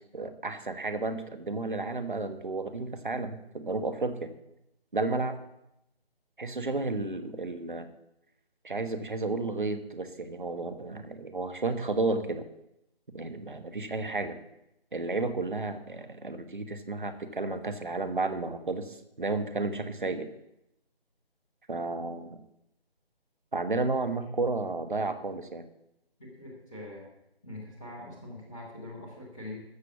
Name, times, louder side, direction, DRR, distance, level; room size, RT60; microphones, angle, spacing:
voice 1, 0.1-4.3 4.9-5.4 6.4-7.9 8.6-12.5 13.1-14.4 14.9-20.3 21.7-22.4 23.5-25.6, right 3 dB, 50° right, 9 dB, 1.3 m, -32 dB
voice 2, 26.2-27.1 27.4-29.6, left 1 dB, 5° left, -7 dB, 1.0 m, -43 dB
14.0 x 6.5 x 8.2 m, 0.82 s
figure-of-eight pair, 160°, 31 cm